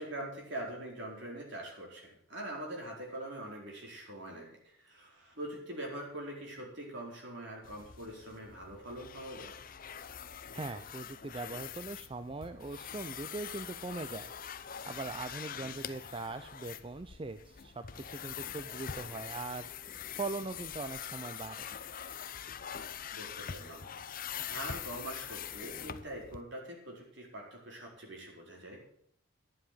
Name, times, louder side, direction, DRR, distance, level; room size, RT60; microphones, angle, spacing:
voice 1, 0.0-9.5 15.5-15.8 23.1-23.8 24.1-28.8, right 1 dB, 55° right, -1 dB, 4.6 m, -43 dB
sound 1, 7.6-26.4, left 8 dB, 40° left, 0.6 m, -44 dB
voice 2, 10.5-14.3 14.9-19.7 20.2-21.7, right 3 dB, 25° right, 10 dB, 0.5 m, -41 dB
11.5 x 7.9 x 8.6 m, 0.67 s
head